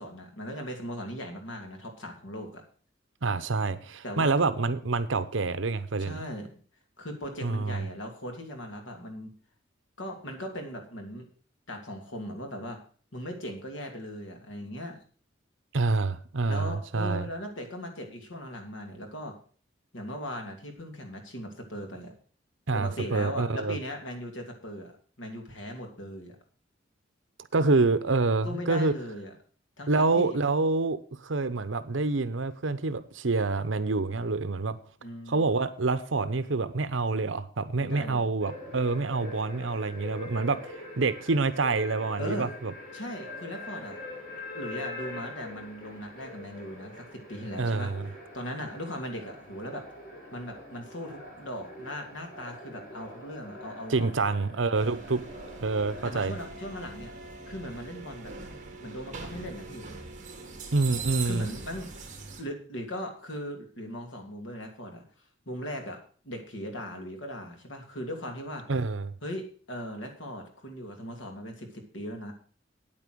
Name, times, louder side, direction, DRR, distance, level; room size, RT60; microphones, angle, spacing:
voice 1, 0.0-2.6 4.0-4.3 6.0-6.5 7.0-9.3 10.0-11.3 11.7-12.8 13.1-15.0 16.5-19.3 19.9-22.1 22.7-24.9 25.2-26.4 28.4-29.3 29.8-30.4 35.0-35.4 37.8-38.3 42.2-42.5 42.9-44.0 44.5-47.9 48.3-49.8 50.3-54.1 56.0-57.1 57.5-58.3 58.8-59.9 61.2-61.9 62.4-65.0 65.5-66.0 66.2-68.6 69.2-72.3, equal, 80° left, 3 dB, 2.8 m, -38 dB
voice 2, 3.2-6.2 7.4-7.9 15.7-17.3 22.7-23.8 27.5-28.9 29.9-34.8 35.3-42.7 47.6-48.1 53.9-55.2 55.6-56.3 60.7-61.5 68.7-69.1, right 3 dB, 80° right, 12 dB, 0.8 m, -27 dB
sound 1, 38.4-56.2, left 2 dB, 50° left, 4.5 m, -44 dB
sound 2, 54.7-62.4, right 4 dB, 40° right, 2.7 m, -41 dB
9.2 x 8.9 x 6.2 m, 0.42 s
head